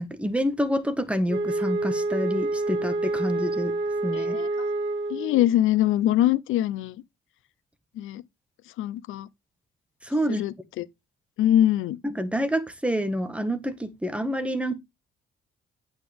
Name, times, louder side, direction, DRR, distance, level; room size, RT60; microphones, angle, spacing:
voice 1, 0.0-3.7 4.0-4.4 10.0-10.4 12.0-14.7, equal, 5° right, 1.8 m, -27 dB
Wind instrument woodwind instrument, 1.3-5.5, right 2 dB, 60° right, 3.1 m, -28 dB
voice 2, 4.1-4.5 5.1-7.0 8.0-8.2 8.8-9.3 10.3-10.9 11.4-12.0, left 12 dB, 85° left, 0.7 m, -23 dB
9.0 x 8.8 x 3.6 m
cardioid pair, 90°, 20 cm